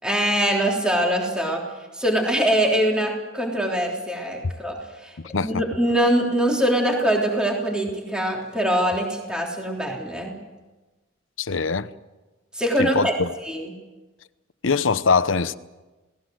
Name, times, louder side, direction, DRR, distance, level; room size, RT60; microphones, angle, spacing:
voice 1, 0.0-1.6 1.9-5.1 5.4-10.3 12.5-13.1 13.4-13.7, right 1 dB, 5° right, 3.5 m, -23 dB
voice 2, 5.2-5.6 11.4-11.9 12.8-13.3 14.6-15.6, left 4 dB, 90° left, 0.9 m, -22 dB
28.0 x 19.0 x 7.9 m
head